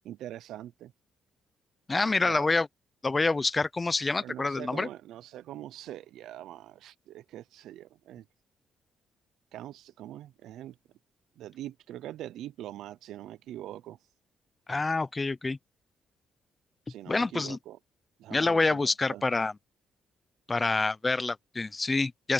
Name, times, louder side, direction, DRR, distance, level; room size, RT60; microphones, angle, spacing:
voice 1, 0.0-0.9 2.2-2.5 4.2-8.3 9.5-10.8 11.4-14.0 16.9-17.8 18.2-19.2, right 13 dB, 80° right, 0.6 m, -43 dB
voice 2, 1.9-2.7 3.0-4.9 14.7-15.6 17.1-17.6 18.3-19.5 20.5-22.3, left 3 dB, 25° left, 0.7 m, -27 dB
open air
cardioid pair, 90°, 0 cm